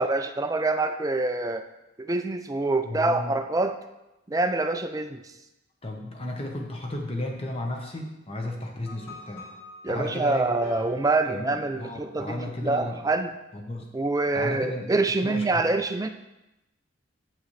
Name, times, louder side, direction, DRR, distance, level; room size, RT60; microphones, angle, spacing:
voice 1, 0.0-1.6 2.0-3.8 4.3-5.2 9.8-13.4 13.9-16.1, right 2 dB, 20° right, 7 dB, 0.4 m, -26 dB
voice 2, 2.8-3.4 5.8-9.5 9.9-10.5 11.2-13.0 13.5-13.9 14.3-15.7, left 1 dB, 30° left, 2 dB, 1.1 m, -34 dB
sound 1, 8.9-12.3, left 2 dB, 10° left, 1.7 m, -45 dB
8.0 x 7.3 x 3.3 m, 0.96 s
head